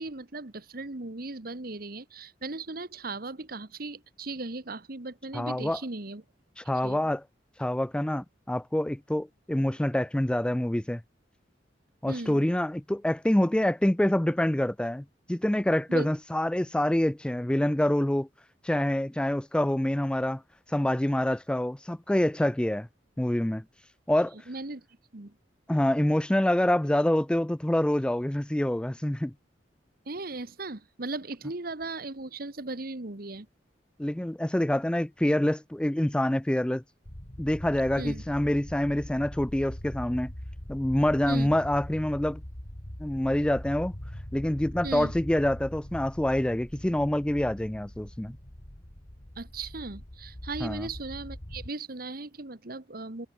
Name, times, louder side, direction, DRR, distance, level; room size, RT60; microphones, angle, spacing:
voice 1, 0.0-6.2 6.8-7.1 12.1-12.4 15.9-16.1 24.5-24.8 25.1-25.3 30.0-33.5 38.0-38.2 41.3-41.5 44.8-45.1 49.4-53.3, right 3 dB, 55° right, 1.5 m, -37 dB
voice 2, 5.3-5.8 6.6-7.2 7.6-11.0 12.0-18.3 18.6-20.4 20.7-22.9 23.2-23.6 24.1-24.4 25.7-29.3 34.0-36.8 37.4-40.3 40.7-42.4 43.0-43.9 44.3-48.4 50.6-50.9, left 1 dB, 5° left, 0.3 m, -26 dB
sound 1, 37.0-51.7, equal, 40° left, 2.8 m, -42 dB
head